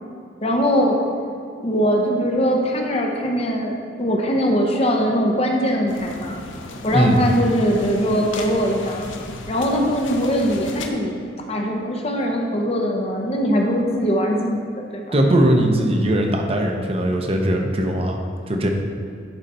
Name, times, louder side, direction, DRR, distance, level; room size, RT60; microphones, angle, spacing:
voice 1, 0.4-1.0 1.6-6.4 6.8-9.1 9.5-11.2 11.5-14.6 14.9-15.0, equal, 30° left, 1 dB, 0.7 m, -21 dB
sound 1, 5.9-10.9, left 2 dB, 90° left, 0.7 m, -35 dB
voice 2, 15.1-18.2 18.5-18.7, right 1 dB, 30° right, 2 dB, 0.7 m, -19 dB
10.5 x 4.0 x 4.3 m, 2.4 s
head